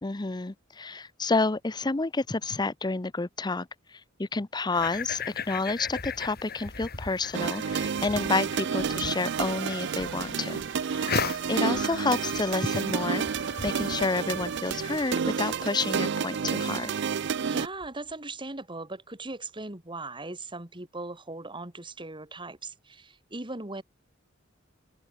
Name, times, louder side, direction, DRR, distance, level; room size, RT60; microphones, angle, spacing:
voice 1, 0.0-10.6 10.9-11.2 11.5-13.2 13.6-16.9, left 3 dB, 20° left, 0.7 m, -29 dB
sound 1, 4.7-15.1, left 5 dB, 50° left, 5.0 m, -38 dB
sound 2, 7.3-17.7, right 6 dB, 65° right, 0.5 m, -30 dB
sound 3, 8.7-18.2, right 1 dB, 90° right, 5.3 m, -49 dB
voice 2, 17.4-23.8, right 2 dB, 25° right, 2.8 m, -39 dB
head